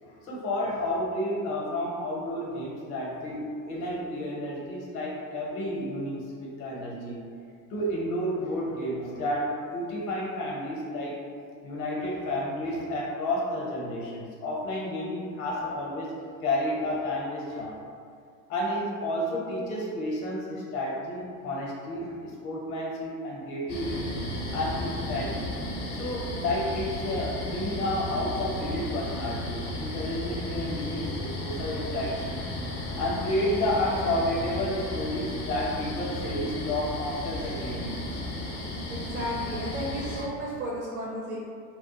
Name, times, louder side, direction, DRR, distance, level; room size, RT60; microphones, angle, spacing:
voice 1, 0.0-7.2 7.7-11.2 11.6-17.8 18.5-24.1 24.5-25.5 25.9-38.6, left 1 dB, 60° left, -4 dB, 0.9 m, -31 dB
sound 1, 23.7-40.2, left 1 dB, 30° left, 0.5 m, -34 dB
voice 2, 38.9-41.4, equal, 30° right, -5 dB, 0.4 m, -33 dB
2.2 x 2.1 x 2.9 m, 2.2 s
figure-of-eight pair, 80°, 50 cm